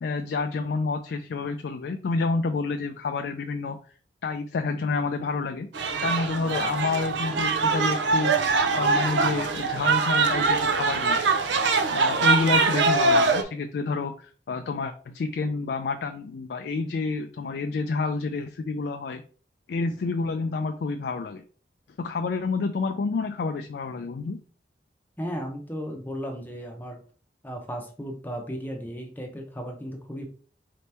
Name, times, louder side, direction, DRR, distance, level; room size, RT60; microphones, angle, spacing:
voice 1, 0.0-3.8 4.2-5.7 6.0-8.4 8.8-11.2 11.9-19.2 19.7-21.4 22.0-24.4, left 4 dB, 65° left, 6 dB, 0.3 m, -29 dB
sound 1, 5.7-13.4, right 4 dB, 90° right, 0.5 m, -23 dB
voice 2, 25.2-27.0 27.4-30.3, equal, 10° left, 2 dB, 0.6 m, -35 dB
4.2 x 2.9 x 3.3 m, 0.42 s
head